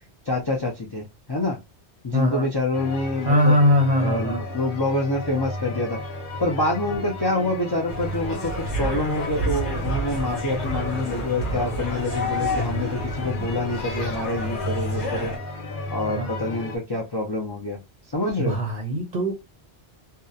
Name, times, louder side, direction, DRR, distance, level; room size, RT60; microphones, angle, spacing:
voice 1, 0.3-1.6 2.0-3.6 4.0-6.0 6.4-8.5 8.8-15.3 15.9-17.8 18.1-18.6, left 2 dB, 35° left, 0.4 m, -26 dB
voice 2, 2.1-2.5 3.2-4.4 16.0-16.3 18.4-19.3, left 1 dB, 45° right, 0.7 m, -21 dB
sound 1, 2.7-16.8, left 2 dB, 55° left, 0.9 m, -34 dB
sound 2, 7.9-15.4, equal, 75° left, 1.3 m, -29 dB
2.7 x 2.1 x 2.3 m
omnidirectional pair, 1.1 m